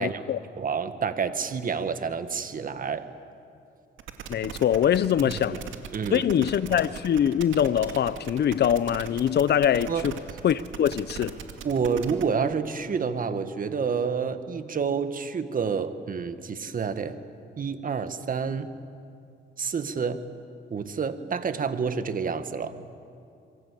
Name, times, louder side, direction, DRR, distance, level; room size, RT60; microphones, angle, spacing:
voice 1, 0.0-0.4 4.3-5.6 6.1-10.1 10.4-11.4, left 9 dB, 55° left, 0.8 m, -23 dB
voice 2, 0.6-3.1 5.9-6.5 9.9-10.1 11.6-17.2 17.6-18.7 19.6-20.3 20.7-22.7, right 6 dB, 45° right, 1.7 m, -29 dB
sound 1, 4.0-12.2, right 8 dB, 80° right, 2.3 m, -39 dB
27.0 x 23.5 x 8.4 m
cardioid pair, 90°, 20 cm